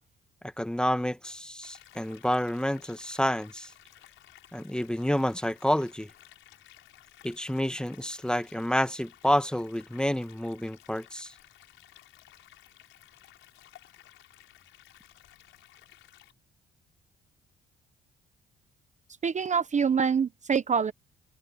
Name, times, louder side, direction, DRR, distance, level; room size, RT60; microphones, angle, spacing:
voice 1, 0.4-3.7 4.5-6.1 7.2-11.3, equal, 5° left, 1.3 m, -29 dB
sound 1, 1.6-16.3, left 14 dB, 90° left, 6.0 m, -56 dB
voice 2, 19.2-20.9, right 6 dB, 35° right, 0.9 m, -25 dB
cardioid pair, 90°, 20 cm